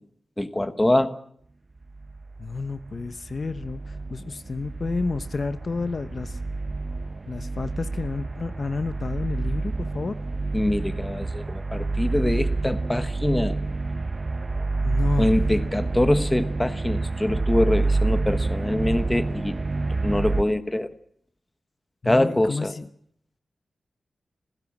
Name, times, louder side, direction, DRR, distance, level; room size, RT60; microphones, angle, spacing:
voice 1, 0.4-1.2 10.5-13.6 15.2-19.6 20.0-20.9 22.0-22.7, left 1 dB, 15° left, 11 dB, 1.2 m, -24 dB
sound 1, 1.8-20.4, right 3 dB, 35° right, 1.1 m, -28 dB
voice 2, 2.4-6.4 7.3-10.2 14.8-15.3 22.0-22.9, left 3 dB, 45° left, 11 dB, 1.0 m, -30 dB
27.0 x 16.5 x 7.4 m, 0.69 s
wide cardioid pair, 125°, 0 cm